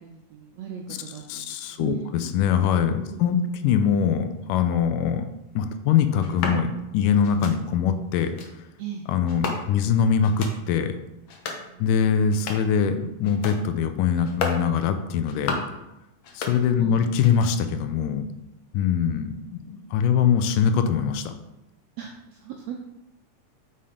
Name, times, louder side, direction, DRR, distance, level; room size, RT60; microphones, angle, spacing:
voice 1, 0.0-2.1 3.0-3.5 8.8-9.1 11.6-11.9 16.7-17.1 19.6-19.9 22.0-22.8, right 8 dB, 90° right, 1 dB, 1.5 m, -38 dB
voice 2, 1.3-3.4 3.6-5.3 5.6-8.3 9.1-10.9 11.8-15.6 16.4-18.2 18.7-21.3, left 7 dB, 85° left, 8 dB, 2.2 m, -23 dB
sound 1, 6.2-6.6 7.2-7.6 8.2-8.5 9.3-9.9 10.2-10.6 11.2-11.7 12.2-12.8 13.2-13.6 14.2-14.6 15.2-15.8 16.2-16.9 17.2-17.8, left 4 dB, 65° left, 1.5 m, -33 dB
5.8 x 5.6 x 4.9 m, 0.92 s
omnidirectional pair, 3.8 m